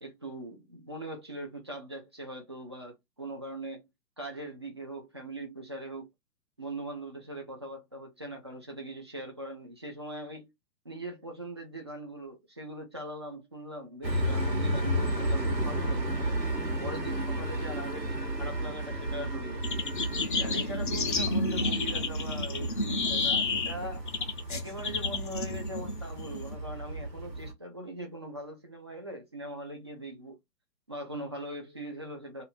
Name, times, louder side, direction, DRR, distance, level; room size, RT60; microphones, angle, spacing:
voice 1, 0.0-3.8 4.2-6.1 6.6-10.5 10.8-16.4 16.8-19.7 20.4-24.1 24.5-30.4 30.9-32.4, right 1 dB, 20° right, 0.4 m, -41 dB
sound 1, 14.0-27.5, right 1 dB, 85° right, 1.4 m, -33 dB
sound 2, 19.6-26.5, left 3 dB, 35° left, 0.5 m, -31 dB
2.6 x 2.5 x 4.0 m
figure-of-eight pair, 125°, 49 cm